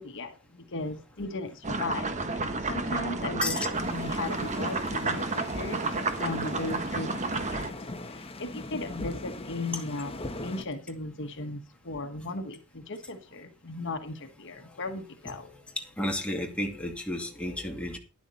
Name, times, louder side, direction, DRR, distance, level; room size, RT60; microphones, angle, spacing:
voice 1, 0.0-15.5, left 2 dB, 60° left, 1.4 m, -37 dB
sound 1, 1.6-7.7, right 3 dB, 35° right, 1.3 m, -31 dB
sound 2, 3.7-10.6, left 2 dB, 30° left, 1.2 m, -42 dB
voice 2, 15.4-18.0, left 1 dB, 5° left, 2.3 m, -32 dB
12.0 x 11.0 x 4.1 m
head